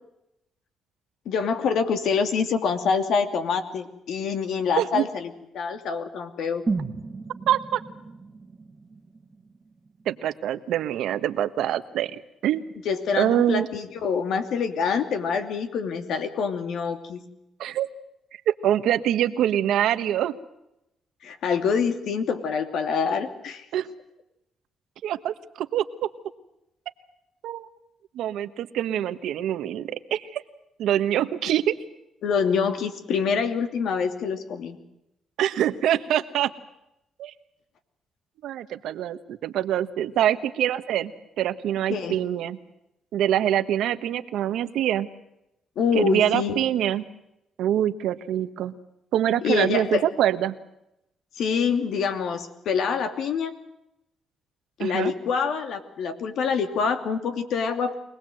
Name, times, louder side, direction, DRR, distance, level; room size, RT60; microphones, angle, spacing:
voice 1, 1.3-6.6 12.8-17.2 21.2-23.6 32.2-34.8 41.9-42.2 45.8-46.5 49.4-50.0 51.4-53.5 54.8-57.9, left 6 dB, 75° left, 7 dB, 2.7 m, -26 dB
sound 1, 6.7-10.6 10.9-11.0, right 4 dB, 25° right, 1.7 m, -34 dB
voice 2, 7.5-7.8 10.0-12.6 13.1-13.7 17.6-17.9 18.5-20.4 23.7-23.9 25.0-25.8 27.4-27.7 28.1-30.4 30.8-31.7 35.4-36.5 37.2-37.3 38.4-41.1 41.4-42.6 43.1-45.1 45.9-47.0 47.6-48.7 49.1-50.6 54.8-55.1, right 11 dB, 80° right, 11 dB, 1.3 m, -25 dB
24.5 x 19.5 x 7.8 m, 0.86 s
cardioid pair, 90°, 0 cm